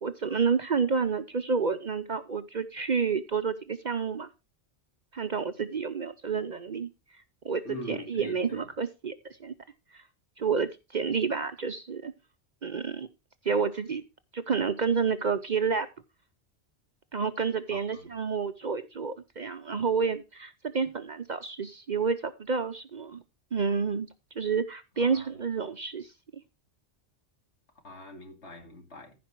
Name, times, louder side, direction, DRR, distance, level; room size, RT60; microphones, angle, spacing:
voice 1, 0.0-4.3 5.1-6.9 7.4-9.5 9.9-10.0 10.4-12.1 12.6-13.1 13.4-14.0 14.3-15.9 17.1-23.2 23.5-24.1 24.4-26.1, right 5 dB, 45° right, 0.7 m, -29 dB
voice 2, 7.6-8.7 17.7-18.0 25.0-25.3 27.8-29.1, left 1 dB, 70° left, 2.6 m, -43 dB
15.0 x 5.1 x 4.5 m
omnidirectional pair, 1.2 m